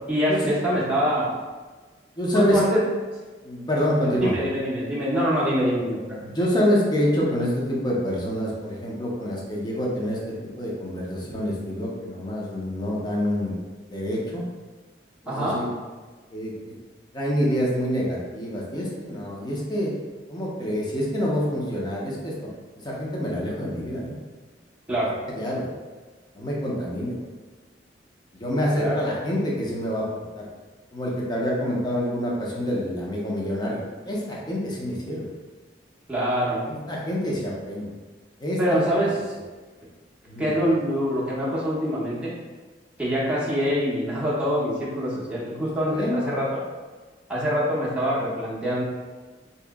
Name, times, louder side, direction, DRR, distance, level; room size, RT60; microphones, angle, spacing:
voice 1, 0.1-1.3 2.3-2.8 4.0-6.2 11.2-11.3 15.3-15.6 24.9-25.1 28.8-29.0 36.1-36.6 38.6-39.1 40.4-42.3 43.0-46.6 47.3-48.8, equal, 5° right, -8 dB, 0.8 m, -24 dB
voice 2, 2.2-2.6 3.4-4.4 6.2-13.6 13.9-14.4 15.2-15.7 16.3-16.5 17.1-19.9 20.3-22.4 22.8-24.1 25.3-25.7 26.3-27.2 28.3-30.4 30.9-33.8 34.0-35.3 36.7-37.9 38.4-38.9 40.3-40.5 45.9-46.2, equal, 25° left, -4 dB, 0.8 m, -26 dB
3.0 x 2.9 x 3.5 m, 1.4 s
head